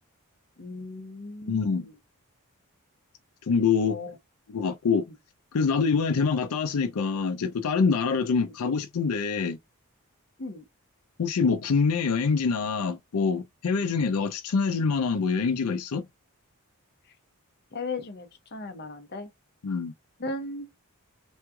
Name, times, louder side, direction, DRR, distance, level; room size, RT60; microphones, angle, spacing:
voice 1, 0.6-1.9 3.9-4.1 8.4-8.5 10.4-10.6 17.7-19.3 20.2-20.7, left 2 dB, 45° left, 0.7 m, -36 dB
voice 2, 1.5-1.9 3.5-4.0 4.5-5.0 5.5-9.6 11.2-16.0 19.6-19.9, left 5 dB, 80° left, 0.5 m, -25 dB
3.5 x 3.1 x 2.2 m
head